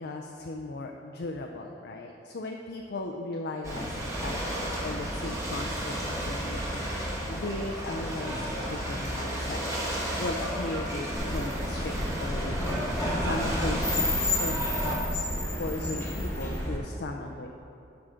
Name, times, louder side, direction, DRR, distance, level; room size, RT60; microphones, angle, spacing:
voice 1, 0.0-6.9 7.3-9.6 10.0-11.9 12.2-12.9 13.2-15.3 15.6-17.5, left 2 dB, 65° left, 2 dB, 0.5 m, -37 dB
Ocean / Boat Water vehicle, 3.6-14.9, equal, 15° right, 1.6 m, -33 dB
sound 1, 11.1-16.8, left 1 dB, 15° left, 1.2 m, -30 dB
11.5 x 5.8 x 3.8 m, 2.7 s
head